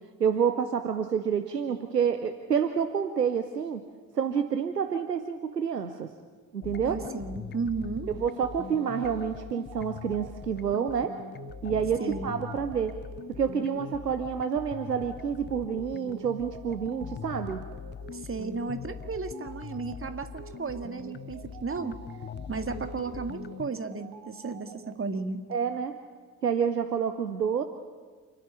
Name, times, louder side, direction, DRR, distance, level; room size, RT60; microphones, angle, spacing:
voice 1, 0.2-3.8 4.1-6.1 6.5-7.0 8.1-11.1 11.6-13.0 13.4-17.6 25.5-25.9 26.4-27.6, right 7 dB, 90° right, 8 dB, 0.7 m, -28 dB
sound 1, 6.6-23.7, left 8 dB, 25° left, 0.5 m, -42 dB
voice 2, 6.8-8.1 12.0-12.3 18.1-22.0 22.5-25.4, right 4 dB, 25° right, 8 dB, 2.0 m, -34 dB
sound 2, 8.4-25.0, right 10 dB, 50° right, 1.5 m, -49 dB
28.0 x 10.0 x 9.9 m, 1.5 s
figure-of-eight pair, 40°, 47 cm